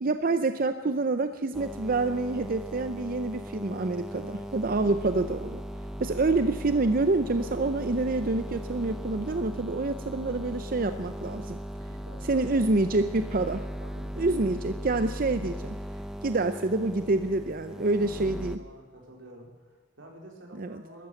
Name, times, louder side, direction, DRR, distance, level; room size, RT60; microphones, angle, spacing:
voice 1, 0.0-5.6 6.0-11.6 12.3-13.6 14.2-15.8 16.2-18.6 20.6-20.8, right 3 dB, 50° right, 10 dB, 0.6 m, -27 dB
sound 1, 1.5-18.6, equal, 5° right, 0.7 m, -38 dB
voice 2, 4.1-4.5 11.9-13.1 13.8-14.8 17.8-21.1, right 1 dB, 85° right, 0 dB, 4.4 m, -50 dB
13.5 x 13.0 x 7.9 m, 1.4 s
head